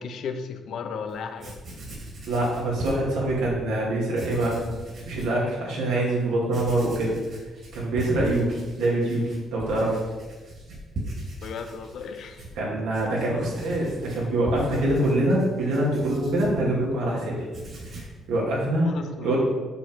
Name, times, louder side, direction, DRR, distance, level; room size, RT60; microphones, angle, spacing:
voice 1, 0.0-1.5 11.4-12.4 12.8-12.9 18.8-19.3, left 5 dB, 70° left, 8 dB, 0.7 m, -35 dB
Writing, 1.1-1.2 1.4-3.6 4.1-5.4 5.8-5.9 6.4-17.1 17.4-18.2, right 1 dB, 55° right, 2.5 m, -39 dB
voice 2, 2.3-4.6 5.0-7.1 7.7-9.2 9.5-10.0 12.6-17.4 18.0-18.9 19.2-19.4, right 1 dB, 90° right, -4 dB, 2.5 m, -24 dB
6.8 x 6.0 x 4.6 m, 1.3 s
cardioid pair, 90°, 0 cm